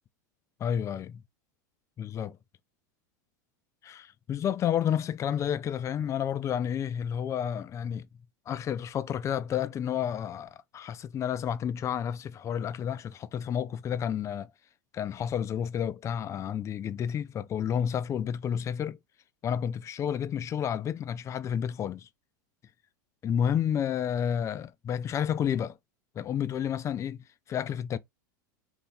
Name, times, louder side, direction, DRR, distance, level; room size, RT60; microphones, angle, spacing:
voice 1, 0.6-1.2 2.0-2.4 3.8-8.1 8.5-14.5 14.9-19.0 19.4-22.1 23.2-25.8 26.2-27.2 27.5-28.0, left 9 dB, 30° left, 0.4 m, -30 dB
2.8 x 2.6 x 3.5 m
hypercardioid pair, 105°, 10 cm